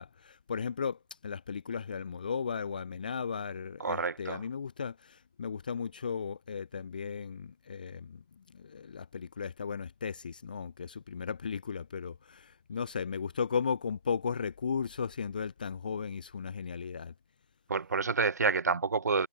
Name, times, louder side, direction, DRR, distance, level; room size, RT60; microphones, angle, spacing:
voice 1, 0.0-17.1, left 6 dB, 20° left, 0.7 m, -36 dB
voice 2, 3.8-4.4 17.7-19.3, right 4 dB, 40° right, 3.2 m, -29 dB
figure-of-eight pair, 165°, 13 cm